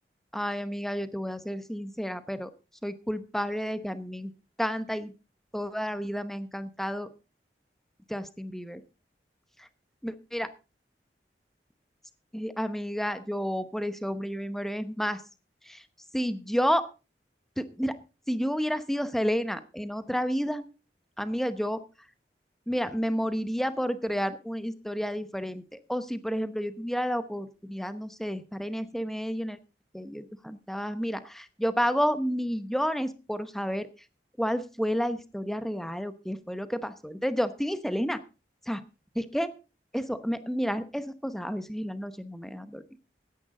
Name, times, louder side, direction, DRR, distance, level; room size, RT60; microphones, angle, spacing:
voice 1, 0.3-2.5 2.8-4.3 4.6-5.1 5.5-7.1 8.1-8.8 10.0-10.5 12.3-15.2 15.6-15.8 16.1-16.9 17.6-17.9 18.3-20.7 21.2-21.8 22.7-29.6 29.9-33.9 34.4-38.2 38.7-38.8 39.1-39.5 39.9-42.8, equal, ahead, 11 dB, 0.8 m, -30 dB
15.5 x 10.5 x 3.8 m, 0.32 s
head